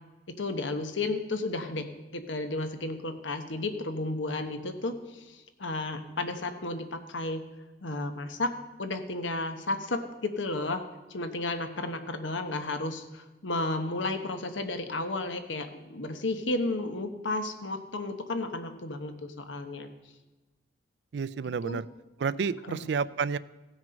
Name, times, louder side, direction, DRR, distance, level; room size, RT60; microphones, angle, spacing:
voice 1, 0.4-7.4 7.8-8.5 8.8-10.8 11.1-19.9 21.6-21.8 22.7-22.9, left 2 dB, 90° left, 8 dB, 1.1 m, -33 dB
voice 2, 21.1-21.9 22.2-23.4, right 5 dB, 70° right, 18 dB, 0.4 m, -30 dB
16.0 x 6.3 x 5.2 m, 1.1 s
head